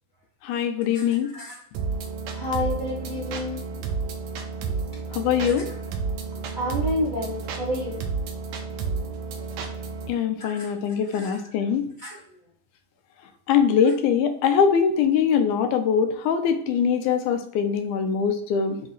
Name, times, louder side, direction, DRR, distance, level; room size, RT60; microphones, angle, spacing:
voice 1, 0.4-1.3 5.1-5.7 10.1-11.8 13.5-18.8, left 7 dB, 80° left, 8 dB, 2.1 m, -22 dB
sound 1, 1.7-10.1, right 4 dB, 70° right, 2.0 m, -31 dB
voice 2, 2.3-3.6 6.5-8.0 10.4-10.7 11.1-11.4 12.0-12.2, left 1 dB, 35° right, -6 dB, 0.8 m, -29 dB
8.4 x 3.0 x 4.0 m, 0.66 s
omnidirectional pair, 3.7 m